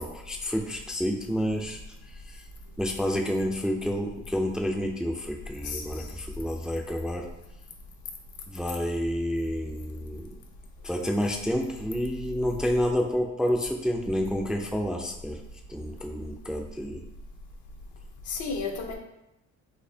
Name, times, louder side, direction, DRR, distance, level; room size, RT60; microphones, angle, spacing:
voice 1, 0.0-1.8 2.3-2.4 2.8-7.2 8.5-10.3 10.8-15.4 15.7-17.0, equal, 5° right, 2 dB, 0.3 m, -29 dB
voice 2, 5.6-6.1 18.3-19.0, left 4 dB, 75° left, 2 dB, 0.7 m, -33 dB
4.1 x 2.7 x 2.7 m, 0.88 s
cardioid pair, 90°, 30 cm